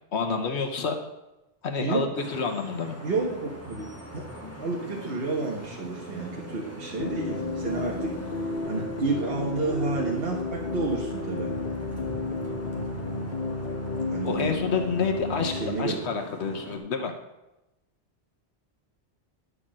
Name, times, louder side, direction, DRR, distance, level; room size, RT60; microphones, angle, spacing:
voice 1, 0.1-1.0 1.6-3.0 8.8-8.9 14.2-15.5 15.8-17.1, left 5 dB, 85° left, 5 dB, 1.2 m, -28 dB
Vehicle horn car horn honking / Traffic noise roadway noise, 2.1-16.8, right 1 dB, 15° left, 1.5 m, -42 dB
voice 2, 3.0-3.9 4.1-4.2 4.6-11.5 14.1-14.6 15.5-16.0, right 3 dB, 60° right, -2 dB, 1.5 m, -30 dB
sound 1, 7.0-15.8, left 3 dB, 55° left, 1.1 m, -32 dB
11.0 x 4.9 x 7.4 m, 0.96 s
omnidirectional pair, 1.1 m